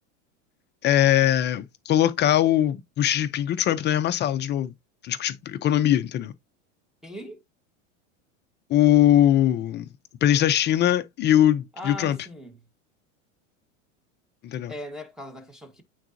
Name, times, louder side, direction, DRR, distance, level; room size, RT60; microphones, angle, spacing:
voice 1, 0.8-4.7 5.0-6.3 8.7-9.9 10.2-12.2 14.4-14.7, left 11 dB, 30° left, 0.5 m, -21 dB
voice 2, 7.0-7.4 11.7-12.6 14.7-15.8, left 1 dB, ahead, 1.5 m, -39 dB
8.9 x 3.9 x 2.7 m
supercardioid pair, 130°, 38 cm